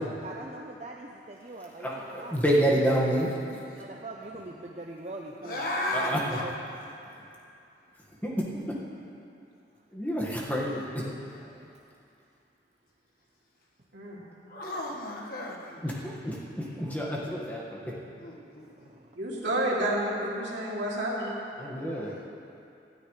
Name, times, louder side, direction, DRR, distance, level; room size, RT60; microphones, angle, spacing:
voice 1, 0.0-2.4 3.7-5.6 5.9-6.5 11.6-11.7 18.5-19.1, right 2 dB, 35° right, 0 dB, 0.7 m, -42 dB
voice 2, 1.8-3.3 5.9-6.2 8.2-8.4 9.9-11.0 15.8-16.4 16.8-17.8 21.6-22.2, equal, 10° left, -4 dB, 1.6 m, -28 dB
voice 3, 3.5-3.8 5.4-6.5 11.2-11.7 14.5-16.2 16.6-16.8 18.2-19.0 21.7-22.3, left 1 dB, 55° left, -1 dB, 1.6 m, -36 dB
voice 4, 19.2-21.3, right 1 dB, 80° right, -5 dB, 2.9 m, -30 dB
18.5 x 13.5 x 3.3 m, 2.6 s
head